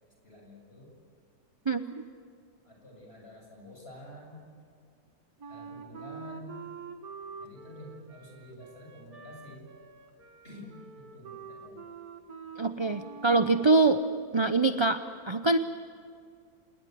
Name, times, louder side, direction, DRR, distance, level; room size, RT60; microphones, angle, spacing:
voice 1, 0.2-0.9 2.6-4.4 5.5-6.7 7.4-9.7 10.4-10.7 11.0-11.8, left 1 dB, 40° left, 0 dB, 7.7 m, -48 dB
Wind instrument woodwind instrument, 5.4-13.8, right 5 dB, 70° right, 2.3 m, -46 dB
voice 2, 12.6-14.0 14.3-15.6, right 3 dB, 30° right, 9 dB, 0.5 m, -24 dB
27.5 x 20.5 x 9.4 m, 2.2 s
omnidirectional pair, 1.6 m